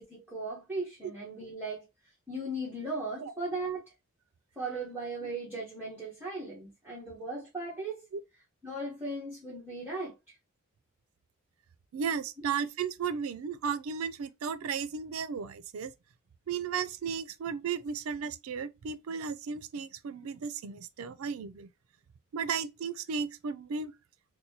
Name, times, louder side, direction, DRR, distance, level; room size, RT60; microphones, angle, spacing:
voice 1, 0.0-1.9 2.3-3.8 4.6-8.1 8.6-10.3, right 2 dB, 10° right, 1.1 m, -37 dB
voice 2, 11.9-15.9 16.5-21.7 22.3-23.9, right 6 dB, 85° right, 0.4 m, -34 dB
4.0 x 2.2 x 2.8 m
head